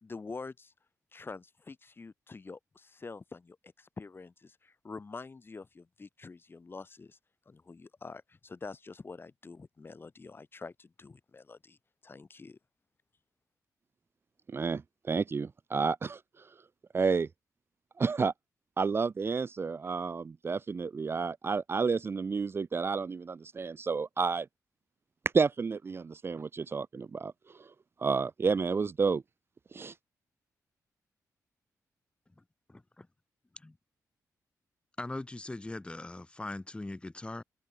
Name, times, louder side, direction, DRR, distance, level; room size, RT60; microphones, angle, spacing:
voice 1, 0.0-0.7 1.1-2.6 3.0-3.6 4.0-4.3 4.8-7.1 7.5-11.8 12.0-12.6, left 4 dB, 35° left, 3.4 m, -46 dB
voice 2, 14.5-16.2 16.9-17.3 18.0-18.3 18.8-24.5 25.3-27.3 27.6-27.7 28.0-29.2 29.7-29.9, right 5 dB, 40° right, 0.5 m, -30 dB
voice 3, 32.7-33.1 33.5-33.8 35.0-37.4, left 2 dB, 15° left, 1.7 m, -41 dB
cardioid pair, 80°, 6 cm